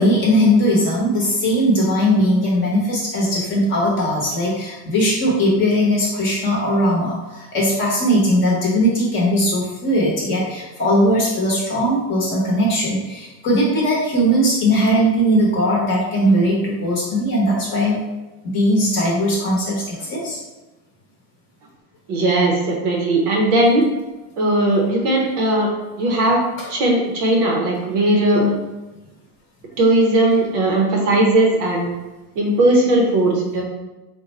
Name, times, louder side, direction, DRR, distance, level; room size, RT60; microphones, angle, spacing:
voice 1, 0.0-18.0 18.4-20.4, equal, 25° left, -4 dB, 0.9 m, -19 dB
voice 2, 22.1-23.9 24.4-25.7 26.0-26.4 26.7-28.6 29.8-31.9 32.4-33.6, right 1 dB, 40° right, -1 dB, 0.7 m, -17 dB
3.8 x 2.2 x 4.1 m, 1.1 s
supercardioid pair, 155°, 49 cm